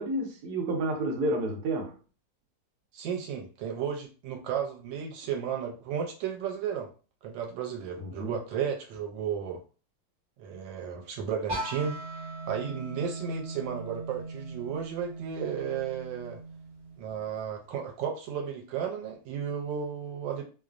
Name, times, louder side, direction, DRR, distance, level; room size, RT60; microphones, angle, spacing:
voice 1, 0.0-2.0 8.0-8.4, right 1 dB, 65° right, 1.1 m, -30 dB
voice 2, 2.9-6.9 7.2-9.6 10.4-12.0 12.5-16.4 17.0-20.4, right 7 dB, 90° right, 1.3 m, -33 dB
sound 1, 11.5-17.3, right 2 dB, 40° right, 0.7 m, -39 dB
3.1 x 2.0 x 2.4 m
omnidirectional pair, 2.0 m